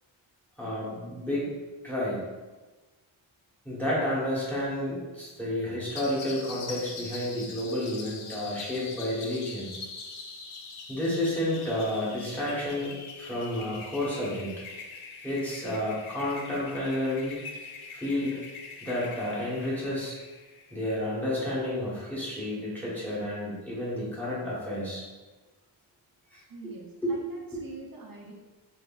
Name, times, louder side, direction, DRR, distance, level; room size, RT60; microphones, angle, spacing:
voice 1, 0.6-1.5 1.8-2.2 3.6-9.7 10.9-12.9 13.2-14.5 15.2-17.4 17.9-18.4 18.8-20.2 20.7-25.0 26.3-26.7 27.0-27.1, left 1 dB, 5° left, -8 dB, 1.2 m, -31 dB
sound 1, 6.0-21.2, left 4 dB, 85° left, 0.6 m, -43 dB
voice 2, 26.5-28.3, right 2 dB, 45° right, -1 dB, 0.7 m, -45 dB
3.7 x 2.9 x 2.4 m, 1.2 s
wide cardioid pair, 90°, 49 cm